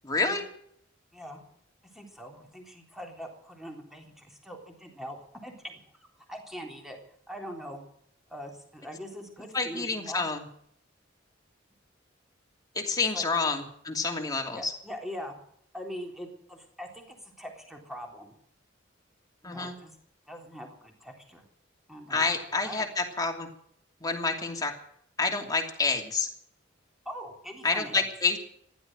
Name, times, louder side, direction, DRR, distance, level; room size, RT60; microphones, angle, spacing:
voice 1, 0.0-0.5 9.5-10.4 12.7-14.7 19.4-19.8 22.1-23.5 24.0-24.7 25.2-26.3 27.6-28.4, left 4 dB, 20° left, 2 dB, 2.8 m, -28 dB
voice 2, 1.9-5.2 5.4-7.0 7.3-7.8 8.3-10.3 13.1-13.3 14.5-15.4 15.7-18.3 19.4-19.9 20.3-21.4 21.9-22.3 22.6-22.9 27.1-28.0, equal, ahead, 2 dB, 3.6 m, -42 dB
15.5 x 11.5 x 7.7 m, 0.67 s
head